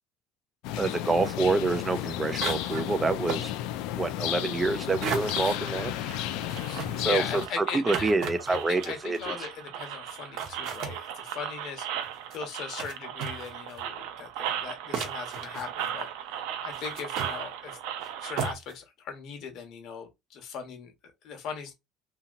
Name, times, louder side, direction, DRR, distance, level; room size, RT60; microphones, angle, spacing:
sound 1, 0.6-7.5, left 12 dB, 75° left, 0.3 m, -32 dB
voice 1, 0.8-3.5 4.0-5.9 7.0-9.3, right 3 dB, 15° right, 0.3 m, -27 dB
sound 2, 1.0-1.3 1.9-2.0 2.4-3.0 3.3-3.5 5.0-5.6 6.3-9.3 10.1-10.2 10.4-11.0 12.0-12.4 12.8-12.9 13.2-13.8 14.4-14.5 14.9-16.0 16.7-17.3 18.0-18.1 18.4-18.7, right 6 dB, 60° right, 0.9 m, -35 dB
sound 3, 5.2-18.5, right 10 dB, 90° right, 0.5 m, -37 dB
voice 2, 6.7-8.1 8.5-11.9 12.3-16.1 16.6-17.8 18.2-20.9 21.2-21.7, left 6 dB, 55° left, 1.0 m, -39 dB
2.8 x 2.7 x 2.5 m
cardioid pair, 155°, 0 cm